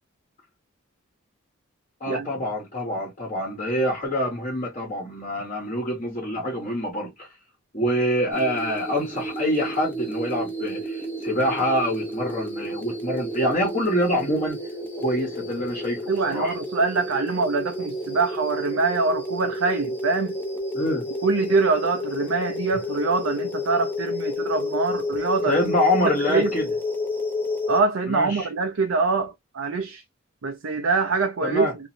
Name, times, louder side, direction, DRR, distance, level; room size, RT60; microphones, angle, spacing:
voice 1, 2.0-7.3 7.7-14.6 15.0-16.5 20.7-21.1 25.5-26.7 28.1-28.5 31.4-31.7, equal, 35° left, 1.1 m, -25 dB
sound 1, 8.3-27.8, left 1 dB, 10° left, 0.7 m, -31 dB
voice 2, 16.1-20.3 21.2-25.7 26.3-26.5 27.7-30.0 30.4-31.7, right 4 dB, 70° right, 0.5 m, -24 dB
3.0 x 2.6 x 2.6 m
head